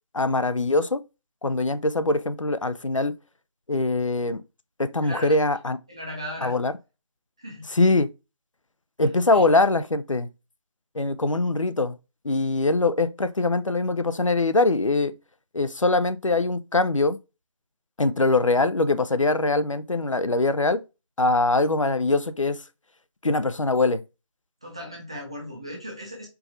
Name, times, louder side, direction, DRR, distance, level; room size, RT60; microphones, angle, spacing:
voice 1, 0.1-1.0 1.4-3.1 3.7-4.4 4.8-5.8 6.4-6.7 7.7-8.1 9.0-10.3 11.0-11.9 12.2-15.1 15.5-17.2 18.0-20.8 21.2-22.6 23.2-24.0, left 2 dB, 85° left, 0.5 m, -22 dB
voice 2, 5.0-5.3 5.9-6.6 7.4-7.7 9.0-9.5 24.6-26.3, equal, 10° right, 0.5 m, -37 dB
4.6 x 2.6 x 3.1 m
figure-of-eight pair, 160°, 16 cm